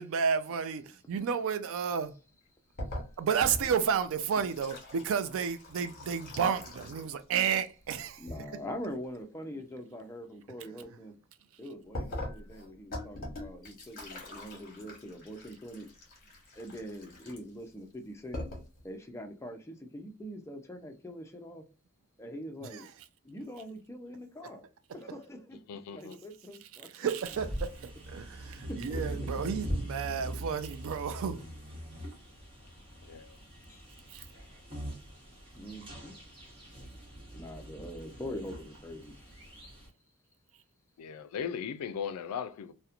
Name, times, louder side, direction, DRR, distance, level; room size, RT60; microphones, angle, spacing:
voice 1, 0.0-2.1 3.2-8.2 26.9-27.7 28.1-31.4 34.1-34.2, right 7 dB, 65° right, 0.4 m, -31 dB
sound 1, 2.8-7.2 7.5-8.4 11.9-17.7 18.1-18.2 18.3-18.8, left 1 dB, 40° left, 1.0 m, -42 dB
voice 2, 8.2-11.2 11.6-15.9 16.6-18.4 18.8-21.6 22.2-22.9 23.2-24.6 24.9-27.1 28.3-28.5 28.8-29.8 33.7-33.8 35.5-36.2 37.3-39.1, equal, 15° left, 0.4 m, -43 dB
voice 3, 25.7-26.2 33.1-33.4 41.0-42.7, left 7 dB, 85° left, 0.3 m, -37 dB
sound 2, 27.2-39.9, right 1 dB, 25° right, 1.1 m, -42 dB
2.8 x 2.1 x 2.4 m
head